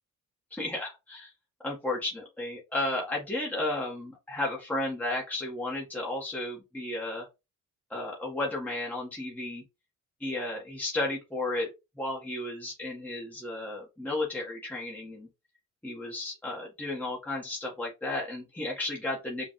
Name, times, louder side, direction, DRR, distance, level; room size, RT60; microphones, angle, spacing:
voice 1, 0.5-1.3 1.6-7.3 7.9-9.6 10.2-11.7 12.0-15.3 15.8-19.5, left 2 dB, 5° left, -4 dB, 1.4 m, -33 dB
5.1 x 2.4 x 3.1 m, 0.25 s
cardioid pair, 90°, 30 cm